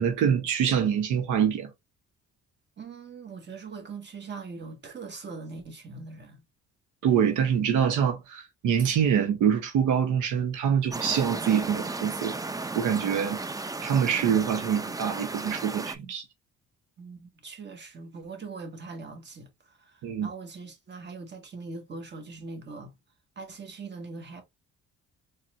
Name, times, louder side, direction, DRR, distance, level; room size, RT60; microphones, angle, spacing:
voice 1, 0.0-1.7 7.0-12.4 12.7-13.4 13.8-16.2 20.0-20.3, right 8 dB, 85° right, 0.9 m, -25 dB
voice 2, 2.8-6.4 13.2-13.3 17.0-22.9 23.3-24.4, right 4 dB, 35° right, 1.5 m, -41 dB
sound 1, 10.9-15.9, right 3 dB, 10° right, 0.4 m, -35 dB
4.1 x 3.3 x 2.5 m
cardioid pair, 90°, 30 cm